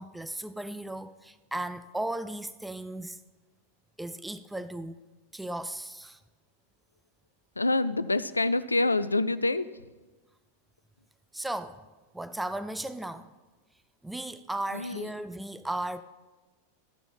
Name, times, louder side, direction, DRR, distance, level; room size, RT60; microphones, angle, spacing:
voice 1, 0.0-3.2 4.0-5.0 5.3-6.2 11.3-11.8 12.1-13.3 14.0-16.0, right 1 dB, 5° right, 0.3 m, -36 dB
voice 2, 7.6-9.6 14.7-15.1, left 2 dB, 80° left, 0.4 m, -26 dB
13.0 x 6.7 x 5.7 m
figure-of-eight pair, 90°, 0 cm